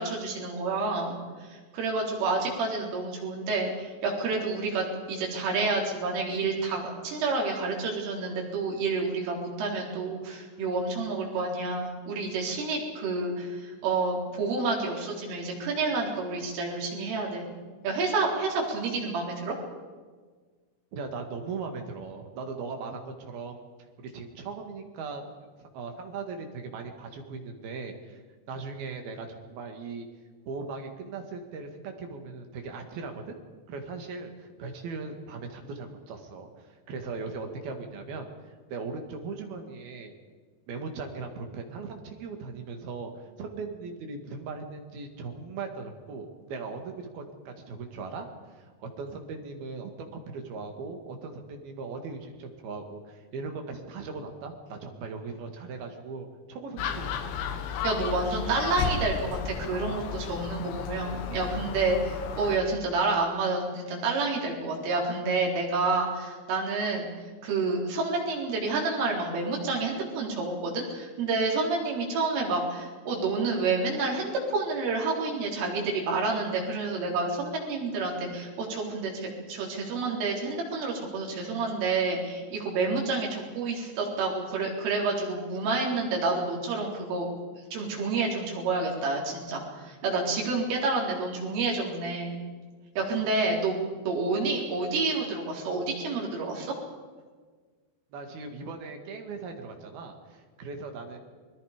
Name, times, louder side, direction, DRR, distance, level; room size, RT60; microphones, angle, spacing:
voice 1, 0.0-17.4 17.8-19.6 57.8-67.1 67.4-87.3 87.7-92.4 93.0-96.7, right 3 dB, 85° right, -1 dB, 6.4 m, -29 dB
voice 2, 20.9-23.6 24.0-25.2 25.6-28.2 28.5-30.1 30.5-33.4 33.7-38.3 38.7-40.1 40.7-57.4 98.1-101.2, right 4 dB, 60° right, 4 dB, 3.5 m, -39 dB
Gull seagull, 56.8-62.6, left 7 dB, 75° left, 3.5 m, -33 dB
29.5 x 21.0 x 5.1 m, 1.5 s
omnidirectional pair, 5.5 m